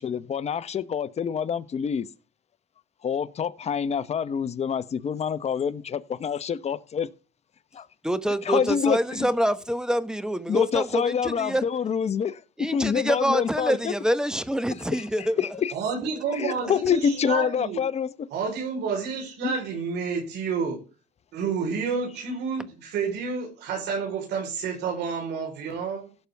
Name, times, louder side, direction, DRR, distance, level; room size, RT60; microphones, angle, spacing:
voice 1, 0.0-2.1 3.0-7.1 7.7-7.9 8.4-9.3 10.5-13.9 14.9-15.7 16.3-18.1 19.4-19.6, left 7 dB, 40° left, 1.0 m, -27 dB
voice 2, 8.0-11.6 12.6-15.4, equal, 5° right, 1.1 m, -26 dB
voice 3, 15.7-17.8 18.3-20.8 21.3-26.1, right 5 dB, 80° right, 4.3 m, -30 dB
16.5 x 6.9 x 3.5 m
cardioid pair, 110°, 17 cm